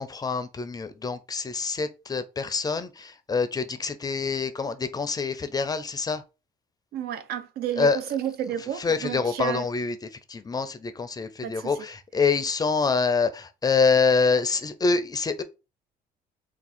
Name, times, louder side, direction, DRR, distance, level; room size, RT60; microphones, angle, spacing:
voice 1, 0.0-6.2 7.8-8.0 8.8-10.0 10.3-15.4, left 4 dB, 20° left, 0.4 m, -26 dB
voice 2, 6.9-9.7 11.4-11.7, right 10 dB, 70° right, 0.5 m, -31 dB
3.5 x 2.3 x 4.2 m
cardioid pair, 110°, 17 cm